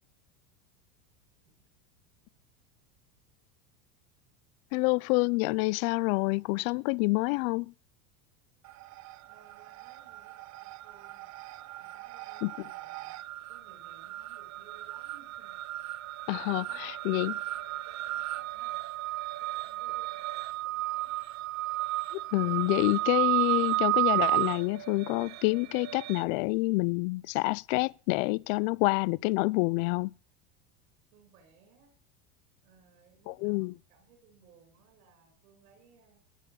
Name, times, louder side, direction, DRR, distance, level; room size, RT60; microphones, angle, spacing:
voice 1, 4.7-7.7 12.4-12.5 16.3-17.3 22.1-30.1 33.3-33.7, left 25 dB, 60° left, 0.6 m, -28 dB
sound 1, 8.7-9.3 9.6-26.2, right 17 dB, 40° right, 0.6 m, -33 dB
voice 2, 9.3-11.3 11.8-13.2 13.5-15.6 16.7-18.9 19.4-21.2 31.1-32.0 32.6-36.2, right 6 dB, 75° right, 7.5 m, -61 dB
19.5 x 6.7 x 7.1 m
supercardioid pair, 110°, 45 cm